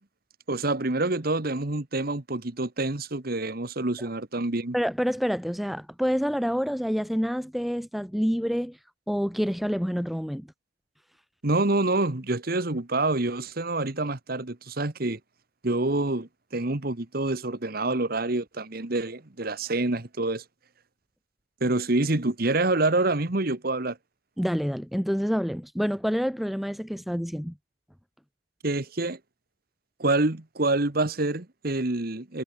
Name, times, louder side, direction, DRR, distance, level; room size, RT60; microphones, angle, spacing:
voice 1, 0.5-4.8 11.4-15.2 15.6-20.4 21.6-24.0 28.6-29.2 30.0-32.4, right 2 dB, 50° right, 1.4 m, -27 dB
voice 2, 4.7-8.8 9.1-10.5 24.4-27.5, equal, ahead, 1.6 m, -27 dB
head